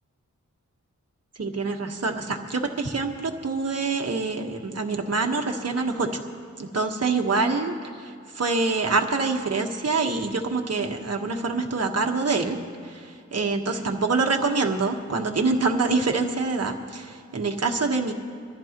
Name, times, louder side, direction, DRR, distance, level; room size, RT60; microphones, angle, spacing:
voice 1, 1.4-6.3 6.7-12.6 12.8-18.1, right 3 dB, 55° right, 3 dB, 1.3 m, -25 dB
24.0 x 14.0 x 3.0 m, 2.4 s
wide cardioid pair, 100°, 30 cm